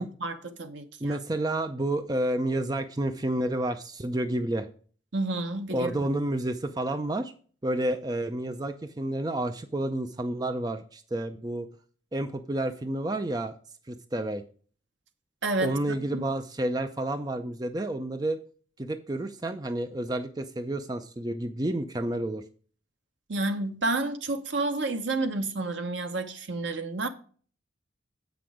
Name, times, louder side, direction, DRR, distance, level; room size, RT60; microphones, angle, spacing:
voice 1, 0.0-1.2 5.1-6.0 15.4-16.3 23.3-27.1, right 2 dB, 70° right, 0.9 m, -30 dB
voice 2, 1.0-4.7 5.7-7.3 7.6-11.7 12.1-13.5 13.9-14.4 15.6-18.4 18.8-22.4, right 1 dB, 20° right, 0.5 m, -30 dB
8.1 x 6.0 x 4.9 m
head